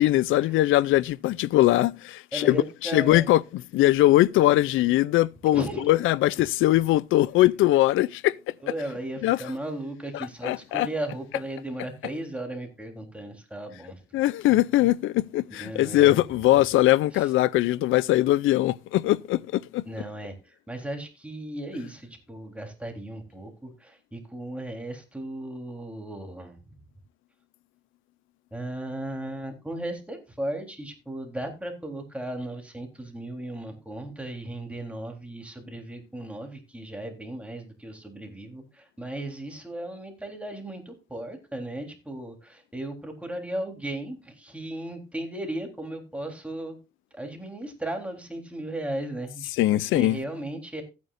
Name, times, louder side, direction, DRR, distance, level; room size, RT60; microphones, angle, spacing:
voice 1, 0.0-2.6 2.8-8.4 9.2-9.4 10.1-10.9 14.1-19.8 49.6-50.2, left 15 dB, 85° left, 0.4 m, -21 dB
voice 2, 2.3-3.3 5.5-5.9 8.6-14.0 15.5-16.2 17.1-17.3 19.8-26.6 28.5-46.8 47.1-50.8, right 1 dB, 5° right, 3.5 m, -36 dB
15.5 x 9.4 x 2.5 m
cardioid pair, 90°, 20 cm